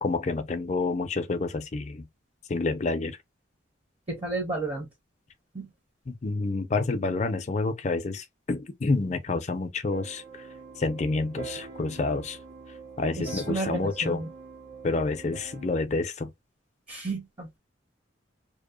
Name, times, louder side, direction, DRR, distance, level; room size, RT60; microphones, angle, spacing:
voice 1, 0.0-2.1 2.5-3.2 6.1-10.5 10.8-12.4 13.0-14.2 14.8-16.3, left 3 dB, 35° left, 0.4 m, -28 dB
voice 2, 4.1-4.9 5.5-5.7 13.2-14.3 16.9-17.6, right 2 dB, 30° right, 0.6 m, -32 dB
sound 1, 9.9-15.7, right 4 dB, 65° right, 1.1 m, -43 dB
2.7 x 2.0 x 2.3 m
head